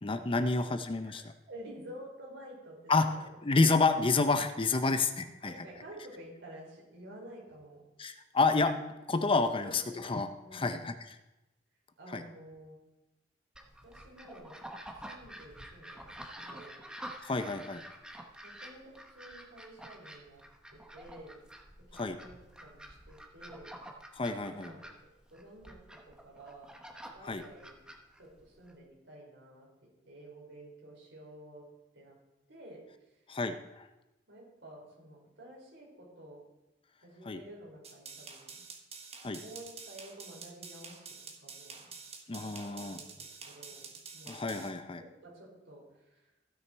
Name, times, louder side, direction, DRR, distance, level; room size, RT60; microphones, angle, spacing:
voice 1, 0.0-1.2 2.9-3.1 3.4-5.5 8.0-11.2 12.1-12.2 17.2-17.8 21.9-22.2 24.1-24.7 27.2-27.4 33.3-33.9 37.2-37.4 39.2-39.4 42.3-43.0 44.3-45.0, left 3 dB, 30° left, 9 dB, 0.6 m, -29 dB
voice 2, 1.1-3.6 5.4-7.9 9.6-10.1 10.4-10.9 12.0-12.8 13.8-14.6 14.9-16.1 16.4-16.8 18.4-20.4 20.7-21.4 21.9-23.8 24.4-24.9 25.3-26.8 27.1-27.8 28.2-29.7 30.0-31.7 31.9-32.2 32.5-33.1 34.3-36.4 37.0-38.6 39.4-41.9 42.3-44.4 45.0-46.3, right 1 dB, 70° right, -3 dB, 4.6 m, -51 dB
sound 1, 13.5-28.7, right 1 dB, 5° right, 1.0 m, -49 dB
sound 2, 37.8-44.7, right 5 dB, 35° right, 1.3 m, -48 dB
15.0 x 6.5 x 4.6 m, 0.98 s
head